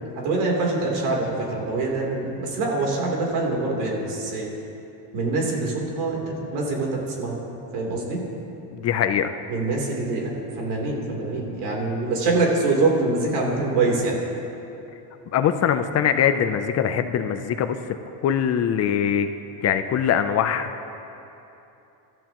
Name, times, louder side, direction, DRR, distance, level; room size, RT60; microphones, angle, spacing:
voice 1, 0.1-4.5 5.1-7.4 7.7-8.2 9.5-10.3 10.6-14.2, right 3 dB, 85° right, -1 dB, 3.6 m, -24 dB
voice 2, 8.7-9.3 15.3-17.8 18.2-19.3 19.6-21.0, left 8 dB, 35° left, 8 dB, 0.6 m, -22 dB
24.0 x 13.5 x 3.0 m, 2.9 s
cardioid pair, 145°, 44 cm